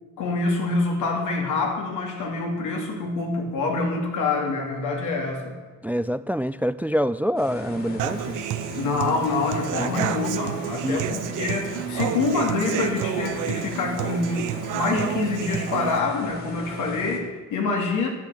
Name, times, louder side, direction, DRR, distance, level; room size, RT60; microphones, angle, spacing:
voice 1, 0.2-5.6 8.8-18.1, left 3 dB, 85° left, 1 dB, 2.8 m, -26 dB
voice 2, 5.8-8.4 9.8-10.0 10.8-11.1, equal, 5° right, 15 dB, 0.3 m, -26 dB
sound 1, 7.4-17.2, left 2 dB, 45° left, 3.0 m, -38 dB
Human voice / Acoustic guitar, 8.0-16.0, right 11 dB, 90° right, 0.8 m, -30 dB
12.0 x 8.5 x 8.0 m, 1.3 s
cardioid pair, 90°, 30 cm